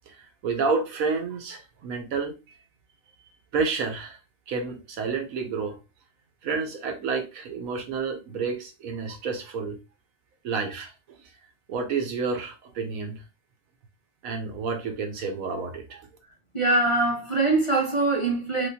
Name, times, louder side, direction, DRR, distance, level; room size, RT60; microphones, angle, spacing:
voice 1, 0.1-2.6 3.5-4.2 4.5-5.8 6.4-9.8 10.4-11.2 11.7-13.2 14.2-16.1, right 4 dB, 85° right, 1.3 m, -30 dB
voice 2, 16.5-18.7, right 2 dB, 25° left, 1.1 m, -23 dB
3.5 x 3.1 x 2.7 m
omnidirectional pair, 1.4 m